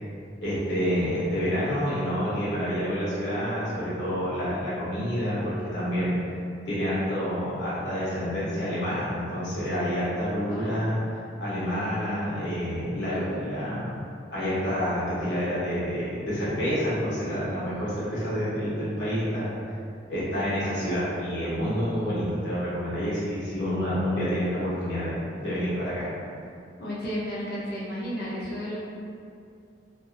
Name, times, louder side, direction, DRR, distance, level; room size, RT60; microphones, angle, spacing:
voice 1, 0.4-6.3 6.6-11.0 11.4-13.9 14.3-19.5 20.1-26.1, equal, 85° left, -10 dB, 1.0 m, -28 dB
voice 2, 10.5-10.9 26.8-28.8, equal, 60° left, -7 dB, 0.6 m, -33 dB
2.6 x 2.4 x 2.4 m, 2.4 s
head